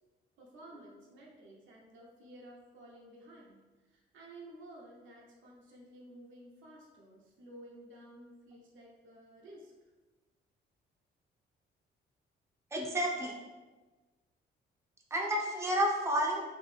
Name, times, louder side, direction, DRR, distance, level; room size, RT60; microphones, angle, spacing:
voice 1, 0.4-3.6 4.1-9.7, right 1 dB, 75° right, -2 dB, 0.9 m, -53 dB
voice 2, 12.7-13.3 15.1-16.4, equal, 15° right, -1 dB, 0.6 m, -30 dB
3.1 x 2.6 x 3.3 m, 1.2 s
cardioid pair, 90°, 20 cm